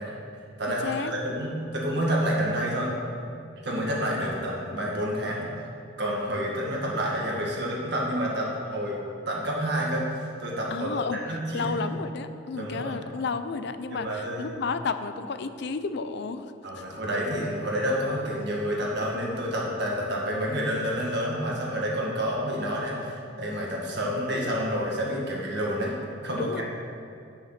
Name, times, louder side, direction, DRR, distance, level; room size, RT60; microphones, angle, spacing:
voice 1, 0.0-2.9 3.6-5.5 6.0-9.0 9.3-11.8 12.5-13.0 13.9-14.6 16.6-26.0 26.2-26.6, equal, 65° right, -3 dB, 1.9 m, -29 dB
voice 2, 0.7-1.1 10.7-11.2 11.5-16.8 26.4-26.6, left 4 dB, 65° left, 10 dB, 0.5 m, -32 dB
9.5 x 5.8 x 5.8 m, 2.5 s
head